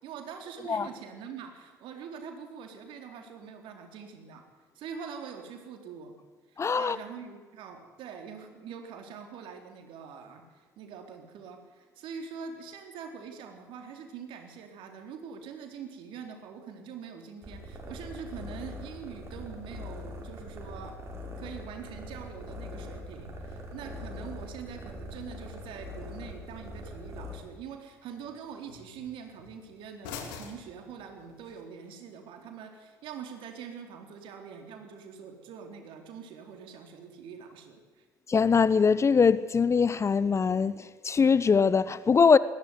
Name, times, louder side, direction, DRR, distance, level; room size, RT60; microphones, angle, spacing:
voice 1, 0.0-4.5 4.8-6.1 6.5-21.0 21.4-38.0, right 6 dB, 55° right, 3.9 m, -44 dB
voice 2, 6.6-7.0 38.3-42.4, left 5 dB, 30° left, 0.9 m, -22 dB
sound 1, 17.4-27.4, left 1 dB, 25° right, 7.3 m, -42 dB
sound 2, 23.6-31.6, left 6 dB, 65° left, 3.1 m, -50 dB
21.0 x 16.5 x 9.7 m
figure-of-eight pair, 55°, 10 cm